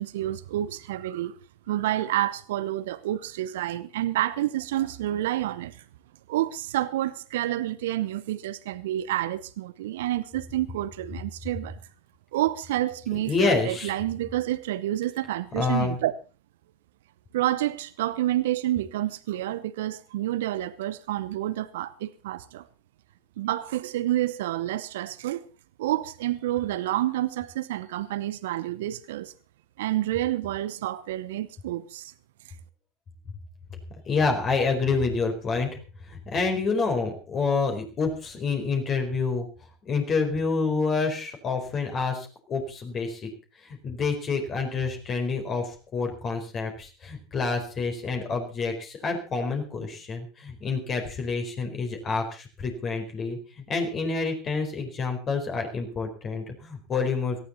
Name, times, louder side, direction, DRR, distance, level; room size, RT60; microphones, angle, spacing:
voice 1, 0.0-1.4 1.7-5.8 6.3-11.8 12.3-16.1 17.3-22.6 23.4-25.5 25.8-29.3 29.8-32.1, right 14 dB, 70° right, 0.8 m, -29 dB
voice 2, 13.1-13.9 15.5-16.0 34.1-35.8 36.1-39.5 39.8-43.3 43.6-57.4, left 4 dB, 35° left, 4.6 m, -28 dB
18.5 x 14.5 x 4.1 m
hypercardioid pair, 85°, 0 cm